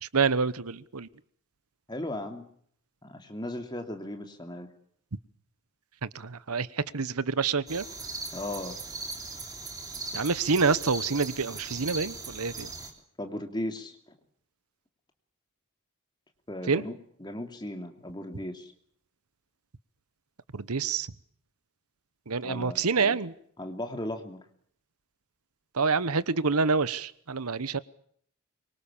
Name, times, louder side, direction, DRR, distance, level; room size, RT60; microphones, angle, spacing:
voice 1, 0.0-1.1 6.0-7.9 10.1-12.7 16.7-16.8 20.5-21.1 22.3-23.3 25.7-27.8, right 4 dB, 90° right, 17 dB, 1.0 m, -27 dB
voice 2, 1.9-2.5 3.0-4.7 8.3-8.8 13.2-14.0 16.5-18.7 22.4-23.2 23.6-24.4, left 1 dB, 20° left, 5 dB, 2.9 m, -36 dB
sound 1, 7.7-12.9, right 3 dB, 15° right, 3.3 m, -39 dB
25.0 x 24.0 x 7.2 m, 0.64 s
head